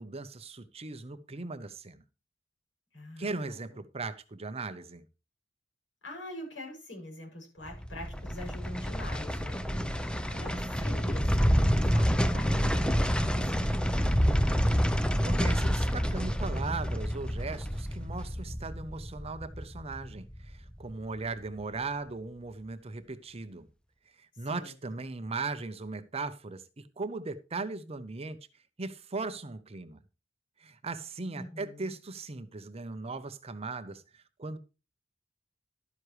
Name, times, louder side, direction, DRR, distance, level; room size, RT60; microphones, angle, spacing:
voice 1, 0.0-2.0 3.2-5.0 15.0-23.7 24.2-28.4 28.8-30.0 30.6-34.6, right 3 dB, 35° right, 0.7 m, -38 dB
voice 2, 2.9-3.6 6.0-9.6 10.0-14.3 24.3-24.7 31.3-32.0, left 1 dB, 75° left, 7.0 m, -45 dB
sound 1, 7.7-20.8 21.2-21.3, equal, 5° left, 0.6 m, -28 dB
12.0 x 9.6 x 3.2 m
head